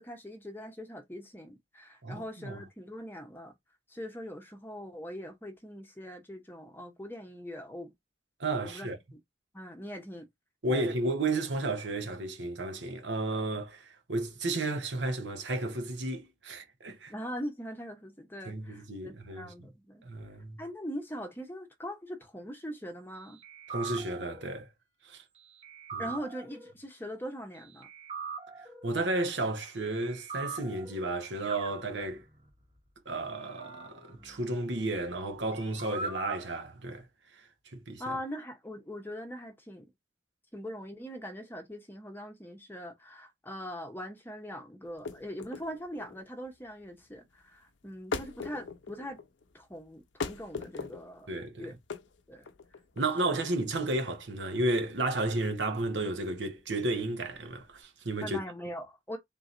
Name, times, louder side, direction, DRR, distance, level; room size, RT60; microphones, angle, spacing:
voice 1, 0.0-3.5 3.9-7.9 8.6-9.2 9.5-10.3 10.7-10.8 17.1-20.0 20.6-23.4 26.0-27.9 38.0-39.9 40.5-49.2 49.5-51.8 52.3-52.5 53.2-53.3 58.2-59.2, equal, 10° left, 0.9 m, -41 dB
voice 2, 2.0-2.6 8.4-9.0 10.6-17.1 18.4-19.7 20.0-20.6 23.7-24.7 25.0-25.2 25.9-26.1 28.8-32.2 33.0-37.1 37.3-38.0 51.3-51.7 53.0-58.4, right 2 dB, 80° right, 1.2 m, -33 dB
sound 1, 23.4-24.5 25.6-26.7 27.8-28.9 30.0-31.1 31.4-32.5 33.3-35.2 35.5-36.5, right 4 dB, 35° right, 1.3 m, -42 dB
sound 2, 44.9-57.8, left 4 dB, 85° left, 0.6 m, -42 dB
3.7 x 2.9 x 3.8 m
head